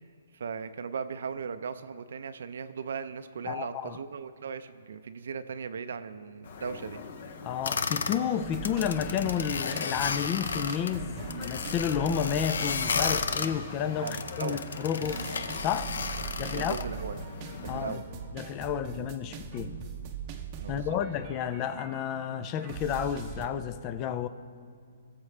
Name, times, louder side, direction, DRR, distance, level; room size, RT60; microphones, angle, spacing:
voice 1, 0.3-7.0 14.0-14.6 16.5-17.2 17.6-18.0 20.6-21.0, right 6 dB, 65° right, 0.5 m, -37 dB
voice 2, 3.5-4.0 7.4-15.2 15.6-15.9 16.4-16.9 17.7-18.0 18.3-19.7 20.7-24.3, left 9 dB, 20° left, 0.4 m, -31 dB
sound 1, 6.4-18.0, left 5 dB, 45° left, 0.8 m, -42 dB
sound 2, 7.6-8.2 8.5-10.9 11.3-13.5 14.1-16.8, left 5 dB, 75° left, 0.6 m, -33 dB
sound 3, 8.4-23.5, right 6 dB, 25° right, 0.7 m, -41 dB
20.5 x 7.2 x 3.3 m
hypercardioid pair, 170°, 0 cm